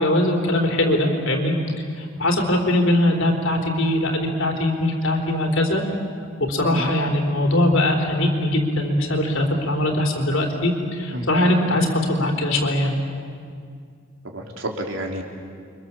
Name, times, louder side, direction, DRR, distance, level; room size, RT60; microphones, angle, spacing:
voice 1, 0.0-1.5 2.0-5.8 6.4-13.0, left 1 dB, 70° left, 2 dB, 3.8 m, -21 dB
voice 2, 14.3-15.2, equal, 70° right, 1 dB, 3.6 m, -29 dB
29.5 x 24.5 x 7.4 m, 2.2 s
head